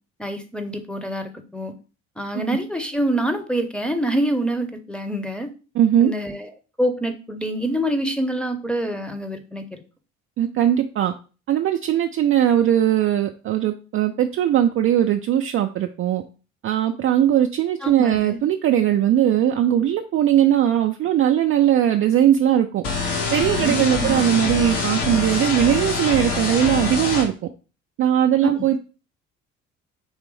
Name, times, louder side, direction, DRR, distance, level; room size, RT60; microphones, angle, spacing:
voice 1, 0.2-1.7 2.2-5.5 6.0-6.5 6.8-9.8 17.8-18.4 23.6-24.2 28.4-28.6, right 1 dB, 5° left, 5 dB, 0.7 m, -26 dB
voice 2, 5.8-6.1 10.4-11.1 11.5-16.2 16.6-22.8 23.3-27.3 28.0-28.8, right 10 dB, 35° right, 5 dB, 0.4 m, -19 dB
sound 1, 22.8-27.2, left 4 dB, 65° left, 1.4 m, -25 dB
4.8 x 3.3 x 3.1 m, 0.35 s
figure-of-eight pair, 50°, 39 cm